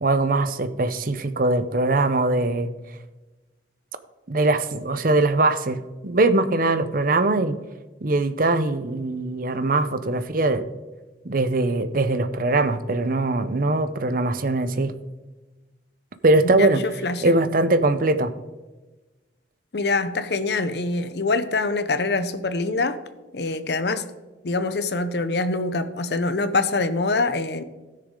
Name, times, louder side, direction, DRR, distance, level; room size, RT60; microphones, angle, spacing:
voice 1, 0.0-2.7 4.3-7.6 8.0-10.6 11.2-14.9 16.2-16.8 17.2-18.3, right 2 dB, 50° right, 11 dB, 0.7 m, -21 dB
voice 2, 16.4-17.4 19.7-23.0 23.3-24.1 24.4-27.6, left 3 dB, 60° left, 12 dB, 0.7 m, -24 dB
16.0 x 6.7 x 3.8 m, 1.2 s
head